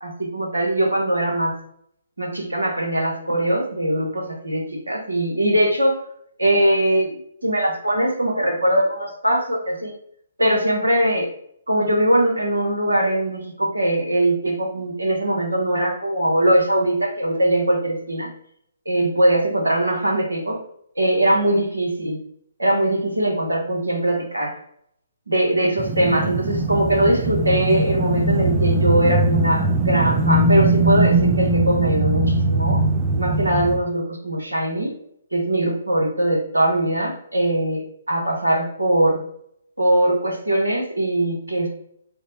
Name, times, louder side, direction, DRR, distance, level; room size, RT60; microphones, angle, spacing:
voice 1, 0.0-1.6 2.2-6.0 6.4-9.9 10.4-11.3 11.7-18.3 18.8-20.6 21.0-22.2 22.6-24.6 25.3-32.8 33.1-34.9 35.3-39.2 39.8-41.7, right 1 dB, 85° right, 0 dB, 1.1 m, -21 dB
sound 1, 25.8-33.8, right 2 dB, 25° right, 0.4 m, -20 dB
3.5 x 2.1 x 4.1 m, 0.68 s
figure-of-eight pair, 135°, 0 cm